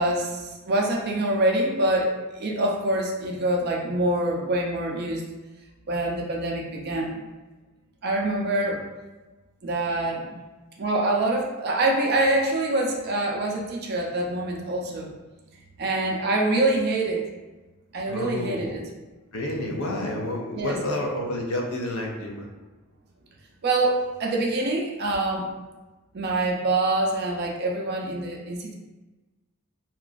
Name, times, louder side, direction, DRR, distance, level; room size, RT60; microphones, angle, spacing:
voice 1, 0.0-5.2 5.9-7.1 8.0-8.8 9.6-10.4 10.8-15.1 15.8-17.2 17.9-18.8 20.5-20.8 23.6-25.5 26.1-28.7, right 2 dB, 45° right, -1 dB, 0.4 m, -25 dB
voice 2, 18.1-18.8 19.3-22.5, left 1 dB, 70° left, 1 dB, 0.5 m, -29 dB
2.9 x 2.4 x 2.4 m, 1.2 s
head